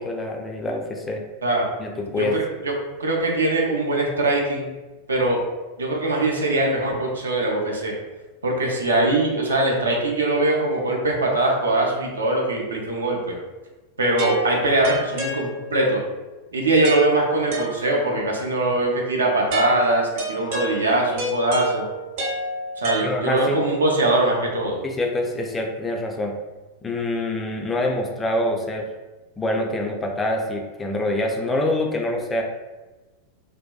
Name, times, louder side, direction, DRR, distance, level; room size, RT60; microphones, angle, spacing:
voice 1, 0.0-1.2 1.8-2.3 23.0-23.6 24.8-26.3 26.8-28.9 29.4-32.4, left 1 dB, 15° left, 1 dB, 0.3 m, -25 dB
voice 2, 2.1-2.7 3.0-4.7 5.1-5.4 5.8-7.9 8.4-13.4 14.0-16.0 16.5-21.9 22.8-24.8, right 2 dB, 75° right, -1 dB, 0.5 m, -22 dB
sound 1, 14.2-16.0 16.8-18.3 19.5-23.6, right 1 dB, 50° right, 0.8 m, -29 dB
2.6 x 2.1 x 2.2 m, 1.2 s
figure-of-eight pair, 90°, 0 cm